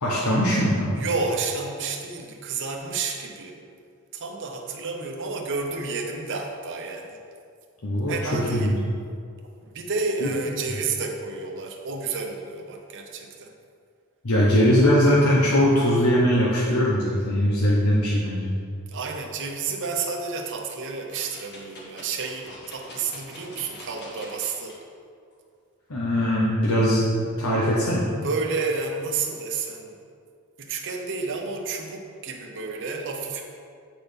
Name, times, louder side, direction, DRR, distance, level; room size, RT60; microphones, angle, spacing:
voice 1, 0.0-1.0 7.8-8.7 10.2-10.3 14.2-18.5 25.9-28.1, equal, 85° left, -6 dB, 1.1 m, -21 dB
voice 2, 0.9-3.6 4.1-7.2 8.1-8.7 9.6-13.5 18.9-24.8 28.2-30.0 30.6-33.4, right 4 dB, 55° right, 2 dB, 0.8 m, -30 dB
sound 1, 21.1-24.7 25.3-25.4, left 1 dB, 50° left, 1.5 m, -44 dB
8.0 x 4.3 x 5.2 m, 2.3 s
head